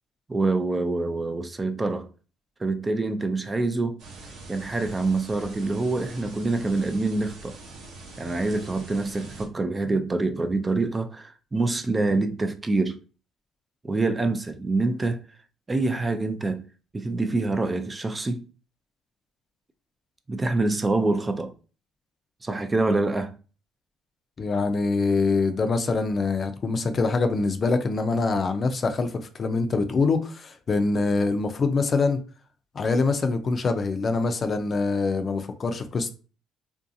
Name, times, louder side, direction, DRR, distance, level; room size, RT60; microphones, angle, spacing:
voice 1, 0.3-2.1 2.6-4.0 4.5-7.6 8.2-13.0 13.8-15.2 15.7-16.6 16.9-18.4 20.3-21.5 22.4-23.3, right 3 dB, 20° right, 0.3 m, -26 dB
sound 1, 4.0-9.5, right 3 dB, 75° right, 0.8 m, -43 dB
voice 2, 24.4-32.2 32.7-36.1, left 3 dB, 40° left, 0.4 m, -24 dB
2.6 x 2.3 x 2.6 m
supercardioid pair, 85°, 0 cm